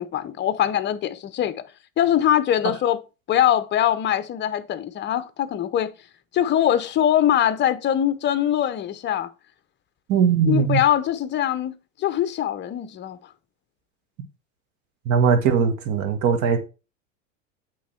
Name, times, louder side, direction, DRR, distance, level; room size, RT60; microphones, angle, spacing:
voice 1, 0.0-1.6 2.0-3.0 3.3-5.9 6.3-9.3 10.5-13.2, left 11 dB, 30° left, 0.8 m, -22 dB
voice 2, 10.1-10.8 15.0-16.6, right 6 dB, 45° right, 1.7 m, -20 dB
8.5 x 3.8 x 4.3 m
hypercardioid pair, 95°, 38 cm